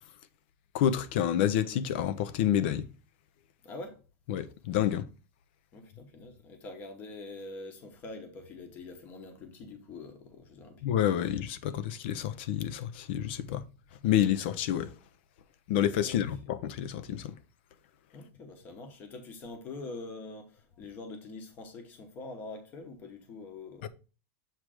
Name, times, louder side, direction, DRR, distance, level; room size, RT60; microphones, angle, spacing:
voice 1, 0.7-2.8 4.3-5.0 10.8-13.6 14.0-14.9 15.7-17.3 23.8-23.9, left 10 dB, 45° left, 0.6 m, -28 dB
voice 2, 3.6-4.0 5.7-10.9 16.0-16.2 18.1-23.9, left 3 dB, 20° left, 1.1 m, -44 dB
7.4 x 3.3 x 4.8 m
supercardioid pair, 180°, 8 cm